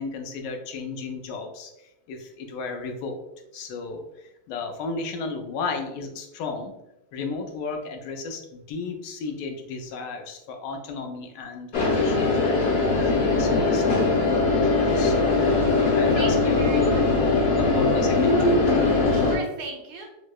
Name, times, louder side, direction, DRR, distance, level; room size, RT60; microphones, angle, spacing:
voice 1, 0.0-3.2 3.5-6.7 7.1-13.9 14.6-15.5 15.9-17.0 17.3-18.7, left 4 dB, 85° left, 4 dB, 1.2 m, -34 dB
sound 1, 11.7-19.4, left 3 dB, 60° left, 0.6 m, -21 dB
voice 2, 14.9-15.4 16.2-16.3 16.6-17.0 19.1-20.1, right 4 dB, 75° right, 1 dB, 1.0 m, -37 dB
4.6 x 2.1 x 2.2 m, 0.88 s
omnidirectional pair, 1.8 m